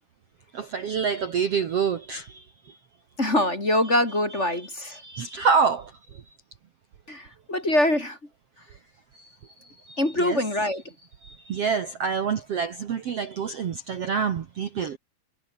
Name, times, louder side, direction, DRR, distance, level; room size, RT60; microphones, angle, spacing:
voice 1, 0.5-2.4 4.9-5.9 9.1-9.3 9.6-10.4 11.2-15.0, right 6 dB, 50° right, 2.1 m, -27 dB
voice 2, 3.2-5.0 7.1-8.2 10.0-10.8, left 1 dB, 20° left, 3.7 m, -24 dB
omnidirectional pair, 4.1 m